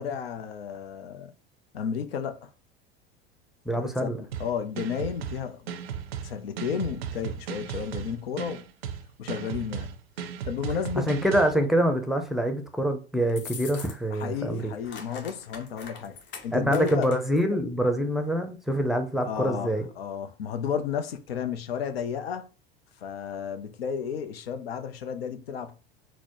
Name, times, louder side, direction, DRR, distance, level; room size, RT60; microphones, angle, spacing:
voice 1, 0.0-1.3 1.7-2.5 3.8-4.1 4.4-5.7 6.2-8.7 9.2-9.9 10.4-11.2 14.1-16.2 16.4-17.1 19.2-22.5 23.0-25.8, left 7 dB, 85° left, 0.5 m, -32 dB
voice 2, 3.7-4.2 11.1-14.7 16.5-19.9, equal, ahead, 0.5 m, -25 dB
sound 1, 4.3-11.5, right 8 dB, 90° right, 0.5 m, -36 dB
sound 2, 13.3-14.2 14.5-17.4, left 5 dB, 40° left, 0.9 m, -43 dB
4.0 x 2.1 x 3.0 m
hypercardioid pair, 90°, 29 cm